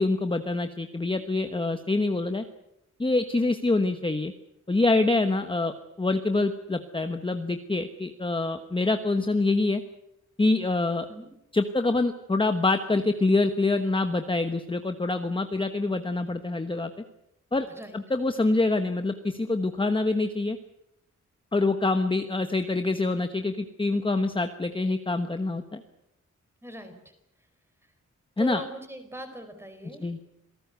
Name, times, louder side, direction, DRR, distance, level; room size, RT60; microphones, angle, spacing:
voice 1, 0.0-2.4 3.0-4.3 4.7-9.8 10.4-11.1 11.5-16.9 17.5-17.7 17.9-20.6 21.5-25.8 28.4-28.6 30.0-30.2, left 2 dB, 15° left, 8 dB, 1.2 m, -25 dB
voice 2, 17.7-18.0 26.6-27.1 28.4-30.0, equal, 10° right, 7 dB, 4.5 m, -40 dB
27.0 x 18.5 x 8.1 m, 0.85 s
wide cardioid pair, 180°, 30 cm